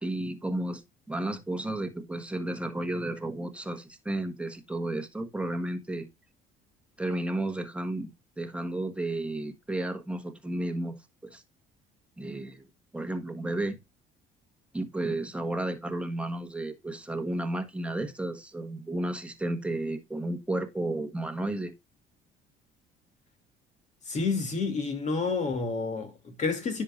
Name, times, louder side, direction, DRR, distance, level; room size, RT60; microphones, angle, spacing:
voice 1, 0.0-6.1 7.0-8.1 8.4-11.0 11.2-11.4 12.2-12.6 12.9-13.8 14.7-21.7, right 1 dB, 5° right, 1.4 m, -32 dB
voice 2, 24.1-26.8, left 4 dB, 45° left, 2.6 m, -29 dB
10.0 x 5.6 x 2.5 m
cardioid pair, 110°, 17 cm